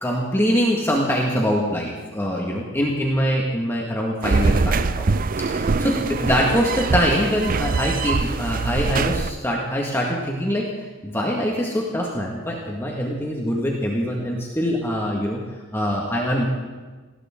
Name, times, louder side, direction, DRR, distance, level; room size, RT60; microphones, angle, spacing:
voice 1, 0.0-5.0 5.4-10.6 11.0-15.4 15.7-16.5, equal, 10° left, -2 dB, 1.9 m, -23 dB
sound 1, 4.2-9.3, right 4 dB, 45° right, 0.5 m, -23 dB
19.5 x 17.0 x 3.8 m, 1.3 s
head